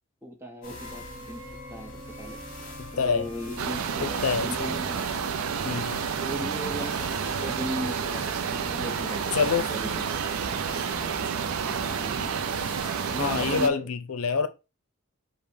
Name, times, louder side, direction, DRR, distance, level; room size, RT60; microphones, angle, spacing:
voice 1, 0.2-1.4 1.7-2.4 2.9-5.1 5.6-5.8 6.2-10.0 13.1-13.9, equal, 10° right, 0.7 m, -37 dB
sound 1, 0.6-13.4, left 1 dB, 35° left, 1.8 m, -42 dB
voice 2, 2.8-3.3 4.0-4.5 5.6-6.1 9.3-9.7 12.2-12.3 13.2-14.5, left 5 dB, 85° left, 0.6 m, -26 dB
sound 2, 3.6-13.7, right 7 dB, 80° right, 0.4 m, -30 dB
sound 3, 6.7-7.8 8.4-8.6 8.8-8.9 9.5-10.4 11.0-11.2 12.4-13.3, left 2 dB, 20° left, 1.4 m, -50 dB
5.2 x 2.1 x 4.8 m
head